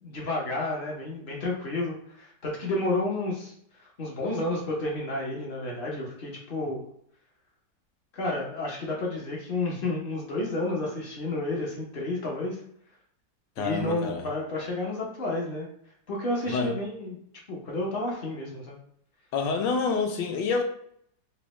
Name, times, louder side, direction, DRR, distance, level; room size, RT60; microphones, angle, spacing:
voice 1, 0.0-3.5 4.0-6.8 8.1-12.6 13.6-15.7 16.1-17.2 17.5-18.8, left 2 dB, 60° left, 0.5 m, -31 dB
voice 2, 13.6-14.2 16.5-16.7 19.3-20.6, left 4 dB, 75° left, 1.2 m, -27 dB
3.8 x 2.1 x 3.0 m
omnidirectional pair, 2.0 m